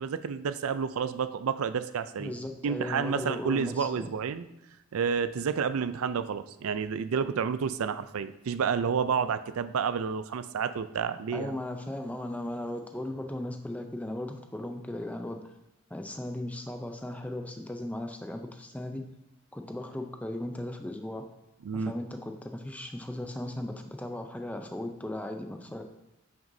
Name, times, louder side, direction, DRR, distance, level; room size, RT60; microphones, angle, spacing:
voice 1, 0.0-2.3 2.6-4.5 4.9-11.5 21.6-21.9, right 6 dB, 85° right, 12 dB, 0.4 m, -30 dB
voice 2, 2.2-4.1 11.3-15.5 15.9-19.0 19.5-21.2 21.7-25.8, left 1 dB, 5° left, 5 dB, 0.5 m, -37 dB
9.0 x 6.0 x 2.7 m, 0.88 s
head